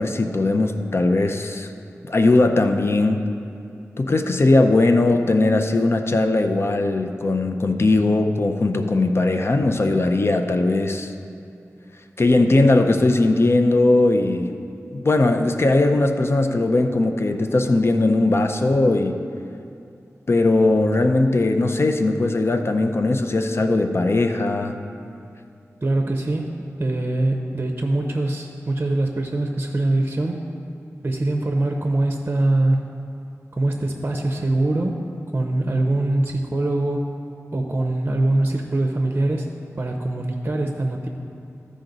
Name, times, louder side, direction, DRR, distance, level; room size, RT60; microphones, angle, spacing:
voice 1, 0.0-1.7 2.1-3.2 4.0-11.1 12.2-14.5 14.9-19.2 20.3-24.8, left 2 dB, 45° left, 6 dB, 0.5 m, -19 dB
voice 2, 25.8-30.4 31.0-32.8 33.5-35.0 35.3-37.1 37.5-39.5 39.8-41.1, right 2 dB, 35° right, 3 dB, 0.7 m, -23 dB
15.0 x 5.0 x 4.0 m, 2.6 s
wide cardioid pair, 75°, 6 cm